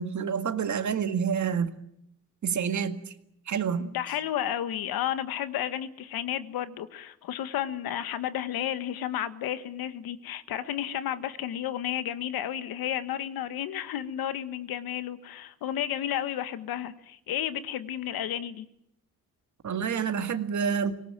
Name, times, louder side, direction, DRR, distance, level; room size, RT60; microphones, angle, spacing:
voice 1, 0.0-1.8 2.4-3.0 3.5-3.9 19.6-20.9, right 7 dB, 55° right, 2.0 m, -28 dB
voice 2, 3.8-18.6, left 11 dB, 85° left, 1.5 m, -32 dB
24.5 x 18.5 x 9.1 m
cardioid pair, 95°, 35 cm